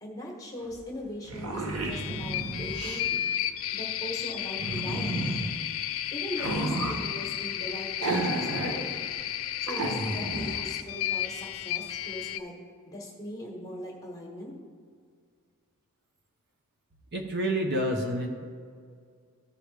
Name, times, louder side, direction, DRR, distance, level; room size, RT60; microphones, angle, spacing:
voice 1, 0.0-3.3 3.7-5.3 6.1-9.0 9.6-12.5 12.8-14.5, left 1 dB, 15° left, -2 dB, 1.5 m, -39 dB
sound 1, 0.7-0.8 1.1-3.1 4.6-5.5 6.3-7.0 8.0-8.8 9.1-9.2 9.7-10.6, right 2 dB, 85° right, 1.0 m, -32 dB
sound 2, 1.9-12.4, left 11 dB, 70° left, 0.4 m, -33 dB
voice 2, 17.1-18.5, right 1 dB, 50° right, 2 dB, 1.0 m, -29 dB
14.0 x 4.9 x 3.4 m, 2.1 s
head